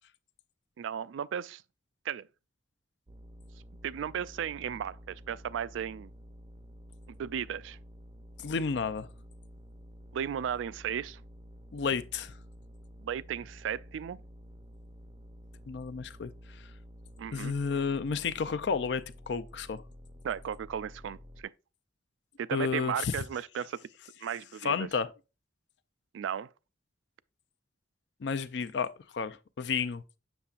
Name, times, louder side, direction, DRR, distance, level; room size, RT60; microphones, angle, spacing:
voice 1, 0.8-1.6 2.0-2.3 3.8-6.1 7.1-7.8 10.1-11.2 13.0-14.2 17.2-17.5 20.2-21.5 22.4-23.8 24.2-24.9 26.1-26.5, right 8 dB, 90° right, 0.3 m, -35 dB
sound 1, 3.1-21.4, equal, 25° right, 0.5 m, -51 dB
voice 2, 8.4-9.1 11.7-12.3 15.7-16.6 17.3-19.8 22.5-23.1 24.6-25.1 28.2-30.0, left 5 dB, 65° left, 0.4 m, -32 dB
7.0 x 6.6 x 2.4 m
head